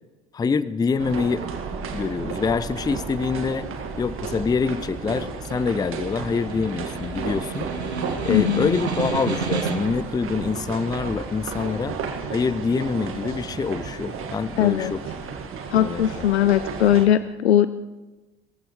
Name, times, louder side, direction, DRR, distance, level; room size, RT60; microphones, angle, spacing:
voice 1, 0.3-1.5 1.9-3.7 4.0-7.7 8.2-12.0 12.3-15.0 15.7-16.2, left 5 dB, 10° left, 16 dB, 0.5 m, -25 dB
sound 1, 1.0-17.1, right 5 dB, 40° right, 1.9 m, -33 dB
Snare drum, 5.2-10.1, right 5 dB, 85° right, 1.4 m, -31 dB
voice 2, 8.3-8.7 14.6-14.9 15.7-17.7, left 11 dB, 85° left, 14 dB, 0.5 m, -19 dB
21.0 x 15.5 x 3.2 m, 1.1 s
figure-of-eight pair, 65°, 32 cm